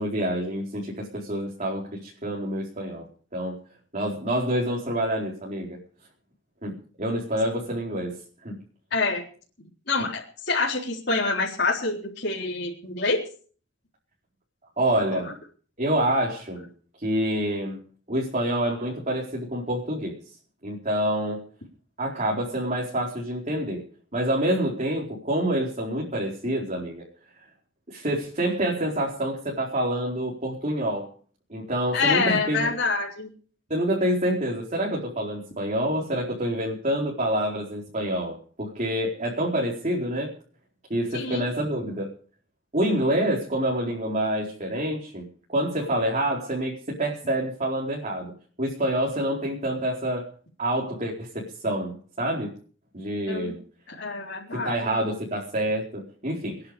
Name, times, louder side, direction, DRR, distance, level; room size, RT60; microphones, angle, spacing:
voice 1, 0.0-3.1 3.3-3.6 3.9-5.8 6.6-8.1 8.4-8.6 14.8-15.3 15.8-16.7 17.0-17.8 18.1-20.1 20.6-21.4 22.0-23.8 24.1-27.0 27.9-31.1 31.5-32.7 33.7-40.3 40.9-42.1 42.7-48.3 48.6-50.3 50.6-52.5 52.9-53.6 54.5-56.7, right 1 dB, 40° right, -3 dB, 4.6 m, -27 dB
voice 2, 8.9-9.2 9.9-13.2 15.1-15.2 31.9-33.3 41.1-41.4 53.3-53.6 53.9-54.9, left 4 dB, 60° left, -4 dB, 4.1 m, -26 dB
26.0 x 10.5 x 5.2 m, 0.42 s
head